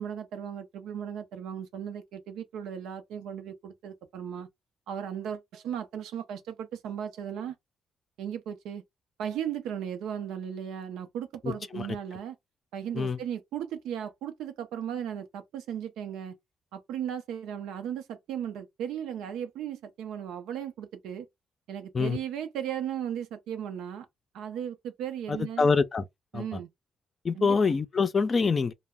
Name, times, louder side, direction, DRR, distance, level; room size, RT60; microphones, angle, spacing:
voice 1, 0.0-4.5 4.9-7.5 8.2-8.8 9.2-12.4 12.7-16.4 16.7-21.3 21.7-24.1 24.3-25.7 26.3-26.7 27.3-27.6, right 9 dB, 90° right, 0.5 m, -36 dB
voice 2, 11.4-11.9 12.9-13.2 21.9-22.2 25.3-26.0 26.3-26.6 27.2-28.7, left 4 dB, 40° left, 0.4 m, -25 dB
2.1 x 2.0 x 3.6 m
cardioid pair, 90°, 0 cm